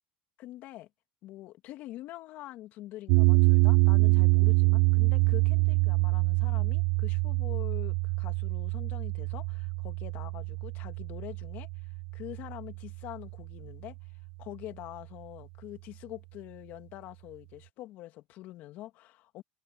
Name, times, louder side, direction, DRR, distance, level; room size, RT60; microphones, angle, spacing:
voice 1, 0.4-0.9 1.2-11.7 12.1-14.0 14.4-19.4, left 15 dB, 60° left, 2.4 m, -45 dB
sound 1, 3.1-13.3, right 29 dB, 70° right, 0.4 m, -25 dB
supercardioid pair, 105°, 3 cm